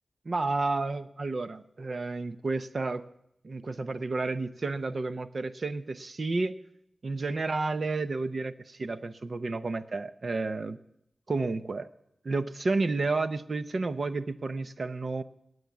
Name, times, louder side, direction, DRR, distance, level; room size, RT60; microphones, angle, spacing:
voice 1, 0.3-3.1 3.4-6.5 7.0-10.8 11.3-11.9 12.2-15.2, right 3 dB, 50° right, 12 dB, 0.7 m, -31 dB
19.5 x 8.0 x 7.2 m, 0.75 s
wide cardioid pair, 115°, 0 cm